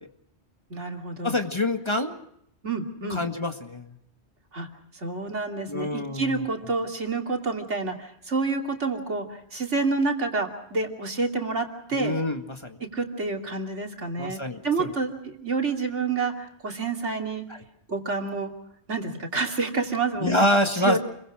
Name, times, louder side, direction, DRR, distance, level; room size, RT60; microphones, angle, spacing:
voice 1, 0.7-1.3 2.6-3.2 4.5-4.7 4.9-12.1 12.8-17.4 17.9-18.5 18.9-20.5 20.8-21.0, right 3 dB, 85° right, 2 dB, 3.1 m, -28 dB
voice 2, 1.2-2.2 3.1-3.9 5.7-6.5 11.9-12.8 14.2-14.9 17.5-17.6 20.2-21.0, left 1 dB, 25° left, 5 dB, 1.9 m, -26 dB
29.5 x 23.5 x 5.0 m, 0.73 s
omnidirectional pair, 1.2 m